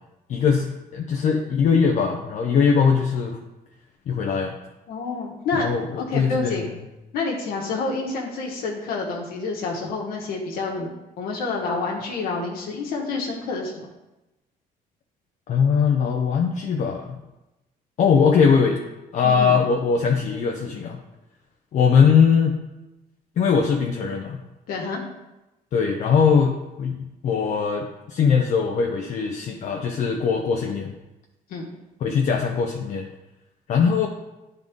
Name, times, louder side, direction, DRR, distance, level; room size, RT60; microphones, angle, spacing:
voice 1, 0.3-0.7 0.9-3.4 4.1-4.6 5.5-6.5 15.5-17.2 18.0-18.8 19.1-21.0 21.7-22.5 23.4-24.4 25.7-26.9 27.2-30.9 32.0-33.1 33.7-34.1, left 6 dB, 50° left, 2 dB, 0.6 m, -20 dB
voice 2, 4.9-5.7 5.9-6.7 7.1-10.9 11.2-13.9 19.2-19.5 24.7-25.0 31.5-31.7, left 3 dB, 70° left, -1 dB, 1.3 m, -28 dB
10.5 x 3.9 x 3.6 m, 0.99 s
cardioid pair, 155°, 16 cm